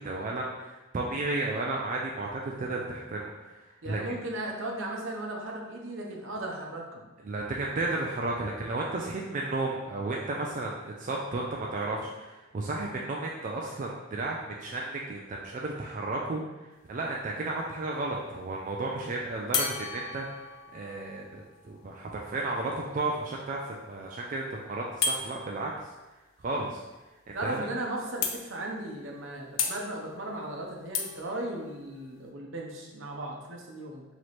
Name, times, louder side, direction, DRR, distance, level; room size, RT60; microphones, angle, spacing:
voice 1, 0.0-4.0 7.2-16.4 16.8-25.9 26.4-26.8 27.3-27.7, right 2 dB, 40° right, -1 dB, 0.4 m, -33 dB
voice 2, 3.8-7.1 27.3-34.0, right 1 dB, 75° right, -1 dB, 0.8 m, -36 dB
sound 1, 16.7-17.2 19.5-23.2 25.0-25.2 27.2-27.3 27.6-27.7 28.2-28.8 29.6-32.3, left 5 dB, 75° left, 0.5 m, -35 dB
3.1 x 3.0 x 4.1 m, 1.1 s
head